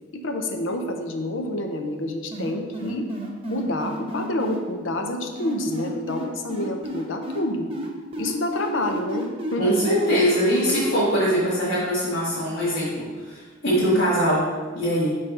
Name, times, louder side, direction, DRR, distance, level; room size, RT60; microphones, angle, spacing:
voice 1, 0.1-3.1 3.5-7.7 8.2-9.7, left 1 dB, 70° left, 4 dB, 0.7 m, -28 dB
sound 1, 2.3-4.6 5.4-7.4 7.7-11.3, right 1 dB, 30° right, 0.9 m, -32 dB
voice 2, 9.6-14.5 14.7-15.1, equal, 55° left, -10 dB, 1.8 m, -22 dB
6.6 x 3.4 x 5.4 m, 1.4 s
head